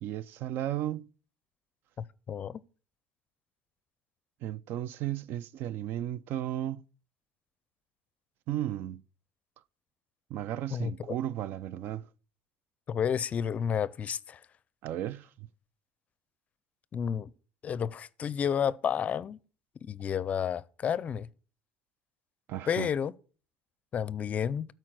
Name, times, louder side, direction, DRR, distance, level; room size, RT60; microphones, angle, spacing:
voice 1, 0.0-1.1 4.4-6.8 8.5-9.0 10.3-12.1 14.8-15.5 22.5-22.9, right 12 dB, 65° right, 0.4 m, -34 dB
voice 2, 2.3-2.6 10.7-11.1 12.9-14.4 16.9-17.3 17.6-19.4 19.8-21.3 22.7-23.1 23.9-24.7, left 8 dB, 35° left, 0.5 m, -31 dB
12.5 x 4.6 x 6.0 m
cardioid pair, 115°, 4 cm